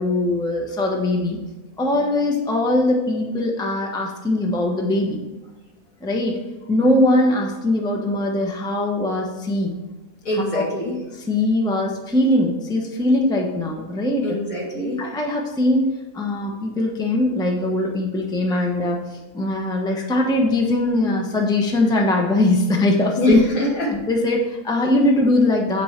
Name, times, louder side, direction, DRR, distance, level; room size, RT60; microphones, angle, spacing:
voice 1, 0.0-1.4 1.8-5.2 6.0-6.4 6.7-9.7 10.3-10.6 11.2-14.4 15.0-23.4 23.9-25.8, left 1 dB, 5° left, 0 dB, 0.9 m, -21 dB
voice 2, 10.2-11.0 14.2-15.0 18.5-18.7 19.9-20.0 23.2-23.9, left 1 dB, 70° left, -4 dB, 2.8 m, -24 dB
8.5 x 6.2 x 4.4 m, 1.2 s
omnidirectional pair, 1.5 m